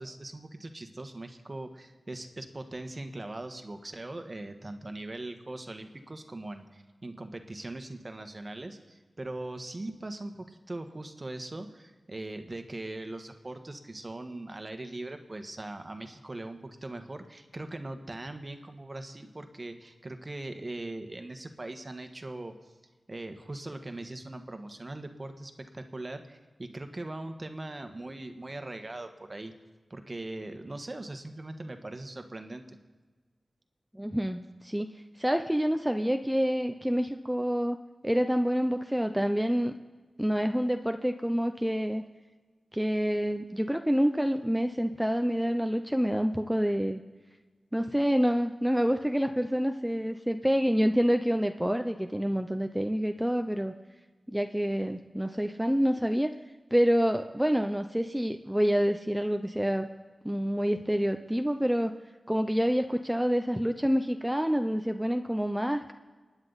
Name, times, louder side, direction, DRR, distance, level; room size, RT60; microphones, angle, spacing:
voice 1, 0.0-22.5 23.1-29.5 29.9-32.8, right 2 dB, 40° right, 6 dB, 1.4 m, -40 dB
voice 2, 33.9-34.9 35.2-37.8 38.0-39.7 40.2-42.0 42.7-47.0 47.7-53.7 54.3-56.3 56.7-59.9 60.2-62.0 62.3-65.9, equal, 5° right, 6 dB, 0.6 m, -27 dB
25.5 x 9.9 x 4.1 m, 1.3 s
wide cardioid pair, 55°, 0 cm